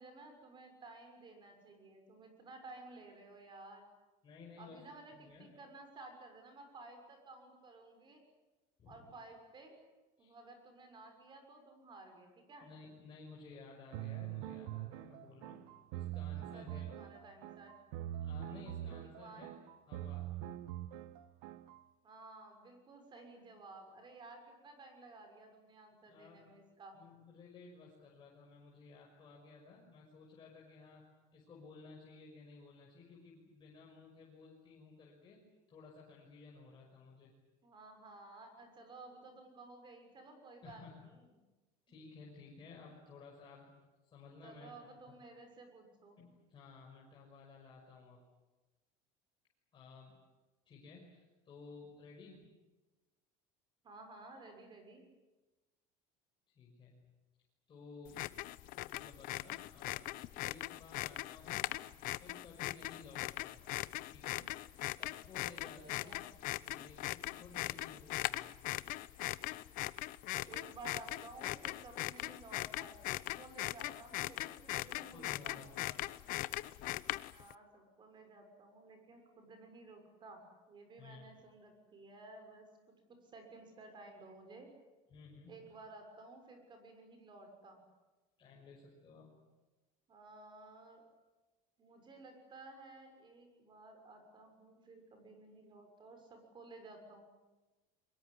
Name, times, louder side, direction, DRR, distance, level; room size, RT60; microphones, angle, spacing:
voice 1, 0.0-3.9 4.6-8.2 8.9-9.7 10.2-12.7 16.2-17.7 19.2-19.5 22.0-27.0 37.6-41.3 41.9-42.0 44.4-46.2 53.8-55.0 65.8-66.3 70.4-75.6 77.3-82.7 83.1-84.7 85.5-87.8 90.1-91.0 91.8-97.3, right 3 dB, 25° right, 5 dB, 6.6 m, -54 dB
voice 2, 4.2-4.8 5.1-5.5 8.8-9.1 10.2-10.3 12.6-17.0 18.2-20.3 26.1-26.5 26.9-31.0 31.3-37.3 40.6-41.0 41.9-43.7 44.0-44.8 46.2-48.2 49.7-50.2 50.7-52.5 56.5-57.1 57.7-58.3 58.9-60.1 60.4-61.7 62.1-63.6 64.1-64.5 64.8-66.1 66.6-68.6 75.1-76.1 81.0-81.3 85.1-85.7 88.4-89.4, left 4 dB, 30° left, -3 dB, 5.9 m, -56 dB
sound 1, 13.9-21.8, right 12 dB, 80° right, 1.2 m, -44 dB
sound 2, 58.1-77.5, left 18 dB, 55° left, 0.8 m, -40 dB
23.5 x 22.0 x 9.8 m, 1.1 s
cardioid pair, 155°, 17 cm